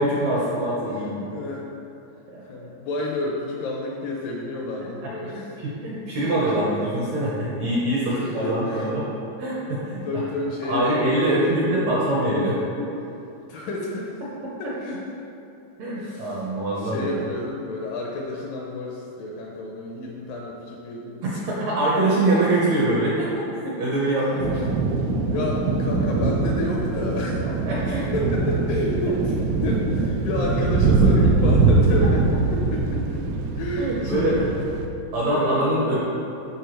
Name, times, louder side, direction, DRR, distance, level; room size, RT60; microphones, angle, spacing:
voice 1, 0.0-1.3 2.3-2.7 5.2-9.0 9.4-10.0 10.7-12.9 15.8-17.1 21.5-23.3 23.6-24.5 27.6-28.1 33.8-34.4 35.1-36.0, right 1 dB, 70° right, -7 dB, 1.7 m, -24 dB
voice 2, 1.3-1.7 2.4-5.6 6.2-6.4 8.1-8.9 10.0-11.8 13.5-14.2 14.6-15.0 16.0-21.5 24.0-24.3 24.6-27.4 28.1-33.2 33.6-34.5 35.3-35.7, left 2 dB, 80° left, -1 dB, 2.0 m, -30 dB
sound 1, 24.4-34.9, right 3 dB, 85° right, 2.6 m, -22 dB
11.5 x 4.6 x 3.1 m, 2.8 s
omnidirectional pair, 4.4 m